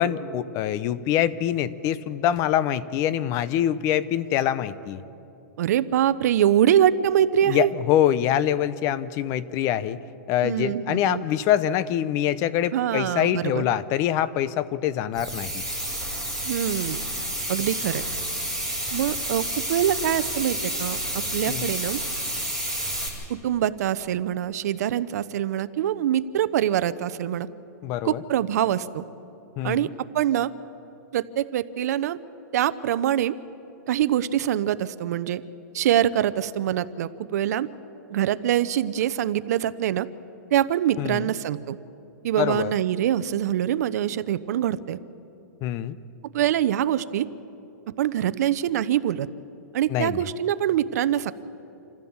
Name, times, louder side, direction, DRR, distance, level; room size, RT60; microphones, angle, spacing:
voice 1, 0.0-5.0 7.4-10.0 10.3-15.6 21.4-21.7 27.8-28.2 29.6-29.9 41.0-41.3 42.4-42.7 45.6-46.0 49.9-50.2, left 11 dB, 30° left, 16 dB, 0.7 m, -24 dB
voice 2, 5.6-7.7 10.4-11.2 12.7-13.7 16.5-17.0 17.5-18.0 18.9-22.0 23.3-27.5 28.0-29.0 29.6-29.9 30.1-30.5 31.1-32.2 32.5-33.4 33.9-35.4 35.7-37.7 38.1-40.1 40.5-41.8 42.2-45.0 46.2-47.3 48.0-49.3 49.7-51.3, right 11 dB, 65° right, 15 dB, 0.8 m, -24 dB
sound 1, 15.1-23.1, right 1 dB, 10° left, 5.5 m, -30 dB
27.5 x 15.0 x 7.2 m, 2.8 s
hypercardioid pair, 155°, 10 cm